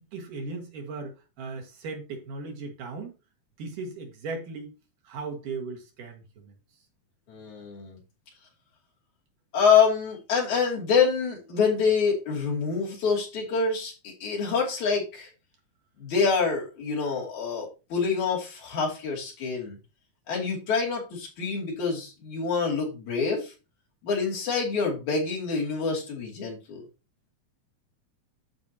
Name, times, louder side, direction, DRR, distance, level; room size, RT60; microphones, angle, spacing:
voice 1, 0.1-3.1 3.6-4.7 5.0-6.6, right 3 dB, 90° right, 3.4 m, -37 dB
voice 2, 7.3-8.0 9.5-15.3 16.0-19.8 20.3-23.5 24.0-26.8, left 5 dB, 70° left, 4.0 m, -26 dB
13.0 x 4.9 x 2.9 m
omnidirectional pair, 3.6 m